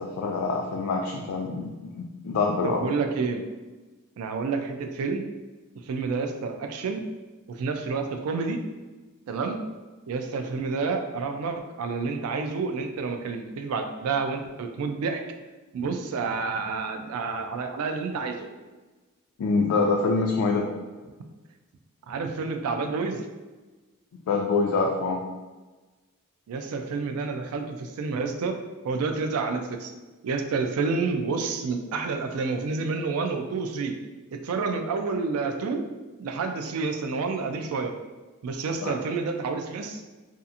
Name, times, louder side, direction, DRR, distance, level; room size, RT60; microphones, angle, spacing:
voice 1, 0.0-2.8 19.4-20.7 24.3-25.2 38.8-38.9, left 3 dB, 75° left, -1 dB, 0.3 m, -25 dB
voice 2, 2.6-3.4 4.2-5.3 5.8-7.0 7.5-8.6 9.3-9.6 10.1-15.2 15.7-18.5 22.1-23.2 26.5-28.6 28.8-29.9 30.2-33.9 34.3-35.8 36.2-37.9 38.4-40.0, right 4 dB, 75° right, 5 dB, 0.3 m, -29 dB
2.7 x 2.4 x 2.4 m, 1.2 s
head